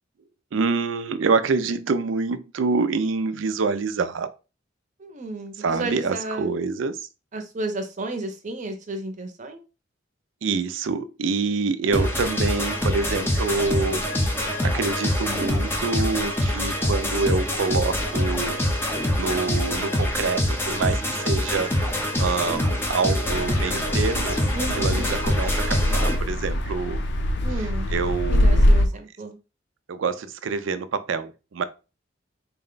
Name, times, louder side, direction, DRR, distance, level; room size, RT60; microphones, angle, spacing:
voice 1, 0.5-4.3 5.6-7.1 10.4-14.0 14.6-18.6 19.1-24.4 24.8-27.0 27.6-28.9 29.9-31.6, right 4 dB, 85° right, 0.4 m, -26 dB
voice 2, 5.0-6.5 7.3-9.6 24.5-25.1 27.4-27.9 28.3-29.4, right 2 dB, 40° right, 0.7 m, -32 dB
sound 1, 11.9-26.2, left 1 dB, 15° left, 0.6 m, -25 dB
sound 2, 23.3-28.9, left 1 dB, 65° left, 0.5 m, -23 dB
4.1 x 2.2 x 3.8 m
head